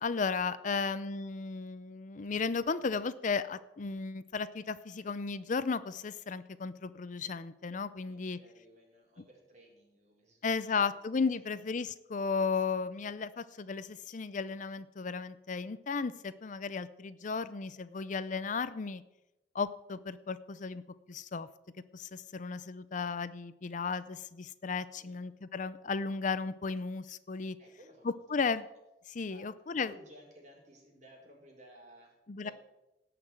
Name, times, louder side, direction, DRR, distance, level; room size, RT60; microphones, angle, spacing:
voice 1, 0.0-8.4 10.4-19.0 19.5-20.8 21.1-21.5 21.9-27.6 28.0-28.6 29.1-29.9 32.3-32.5, left 5 dB, 45° left, 15 dB, 0.5 m, -34 dB
voice 2, 0.5-0.9 8.1-10.9 11.3-11.6 25.0-25.3 27.6-28.6 29.3-32.5, equal, 40° right, 0 dB, 4.4 m, -58 dB
17.5 x 5.9 x 9.1 m, 0.95 s
head